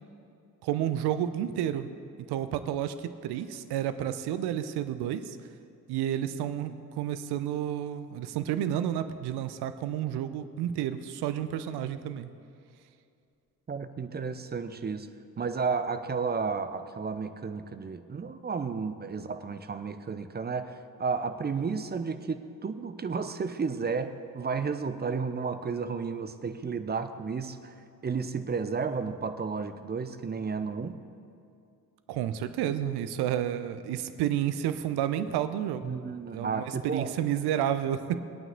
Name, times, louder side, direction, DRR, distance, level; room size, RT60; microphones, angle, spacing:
voice 1, 0.6-1.9 2.3-5.4 5.9-12.3 32.1-35.9 36.3-38.2, right 10 dB, 55° right, 11 dB, 0.8 m, -30 dB
voice 2, 13.7-15.1 15.4-27.6 28.0-31.0 35.8-37.1, right 5 dB, 20° right, 10 dB, 0.7 m, -32 dB
20.5 x 9.0 x 3.9 m, 2.5 s
figure-of-eight pair, 45°, 48 cm